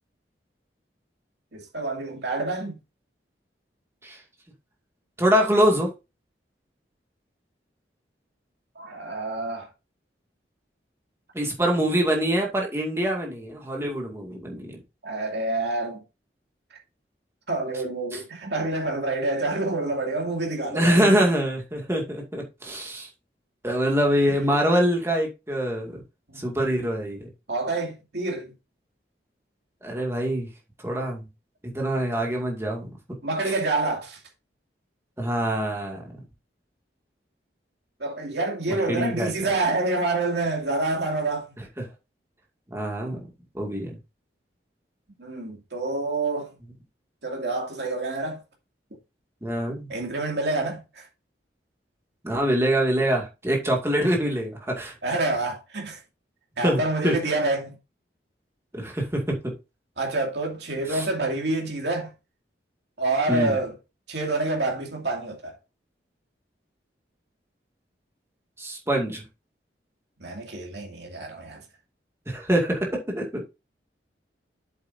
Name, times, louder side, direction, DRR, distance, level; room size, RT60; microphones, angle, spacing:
voice 1, 1.5-2.8 8.8-9.7 15.0-16.0 17.5-21.2 24.3-24.4 26.3-26.4 27.5-28.5 33.2-34.2 38.0-41.5 45.2-46.5 47.2-48.4 49.9-51.1 55.0-56.0 56.6-57.8 60.0-62.1 63.0-63.8 64.1-65.6 70.2-71.6, right 2 dB, 70° right, 2.5 m, -27 dB
voice 2, 5.2-5.9 11.3-14.8 20.7-23.1 23.6-26.0 26.4-27.3 29.8-30.5 30.8-31.3 31.6-32.9 35.2-36.0 38.7-39.5 41.8-41.9 42.7-43.2 43.5-43.9 49.4-49.9 52.2-54.9 56.6-57.1 58.7-59.5 60.9-61.0 63.3-63.6 68.6-69.2 72.3-73.4, equal, 15° right, 2.2 m, -24 dB
8.3 x 7.6 x 2.7 m
head